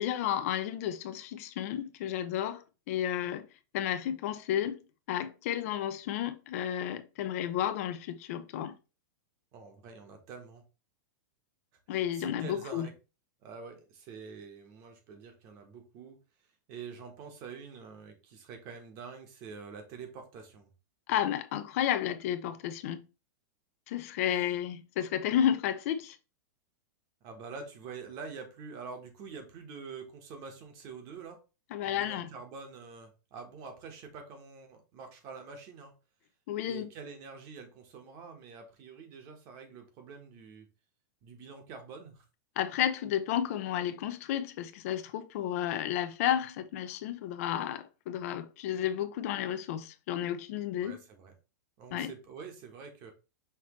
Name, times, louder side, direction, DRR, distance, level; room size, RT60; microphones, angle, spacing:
voice 1, 0.0-3.5 3.7-4.8 5.1-8.7 11.9-12.9 21.1-23.0 23.9-26.2 31.7-32.3 36.5-36.9 42.6-51.0 51.9-52.1, left 10 dB, 50° left, 0.5 m, -32 dB
voice 2, 9.5-10.6 12.1-12.9 13.4-16.2 16.7-20.7 24.2-24.6 27.2-31.4 31.8-35.9 36.6-40.6 41.2-42.2 50.8-51.3 51.8-53.1, right 5 dB, 35° right, 1.1 m, -46 dB
5.7 x 3.0 x 3.1 m
supercardioid pair, 160°, 10 cm